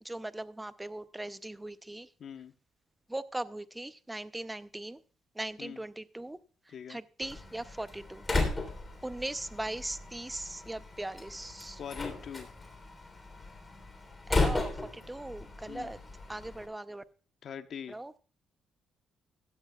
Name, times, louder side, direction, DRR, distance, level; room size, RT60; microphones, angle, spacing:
voice 1, 0.0-2.1 3.1-5.0 5.3-6.4 6.7-8.3 9.0-11.8 14.3-16.0 16.3-17.0 17.9-18.1, right 1 dB, 10° right, 14 dB, 0.7 m, -39 dB
voice 2, 2.2-2.5 5.6-5.8 6.7-7.0 11.8-12.5 15.7-15.9 17.4-18.0, left 8 dB, 60° left, 9 dB, 1.0 m, -42 dB
Slam, 7.2-16.7, left 2 dB, 20° left, 3.3 m, -35 dB
16.0 x 12.5 x 2.3 m, 0.36 s
cardioid pair, 90°, 0 cm